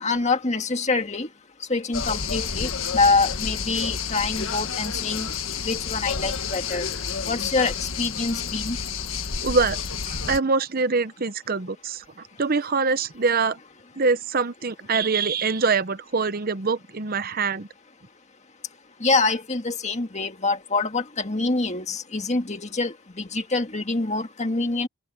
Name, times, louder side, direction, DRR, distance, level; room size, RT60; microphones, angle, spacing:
voice 1, 0.0-1.3 1.7-5.3 5.6-6.9 7.3-8.8 19.0-24.9, left 3 dB, 30° left, 1.8 m, -25 dB
sound 1, 1.9-10.4, left 6 dB, 65° left, 1.7 m, -30 dB
voice 2, 9.4-9.8 10.1-12.0 12.4-13.6 14.0-17.7, right 4 dB, 40° right, 0.8 m, -24 dB
head